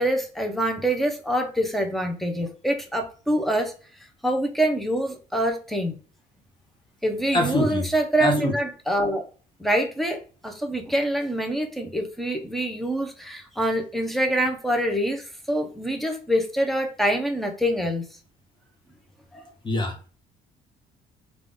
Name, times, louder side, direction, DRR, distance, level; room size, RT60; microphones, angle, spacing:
voice 1, 0.0-3.7 4.2-5.9 7.0-9.2 9.6-18.1 19.3-19.5, right 1 dB, ahead, 4 dB, 0.8 m, -25 dB
voice 2, 7.3-7.9 8.2-8.5 19.6-20.0, left 1 dB, 25° left, 3 dB, 1.0 m, -23 dB
3.6 x 2.6 x 3.5 m, 0.38 s
cardioid pair, 110°, 17 cm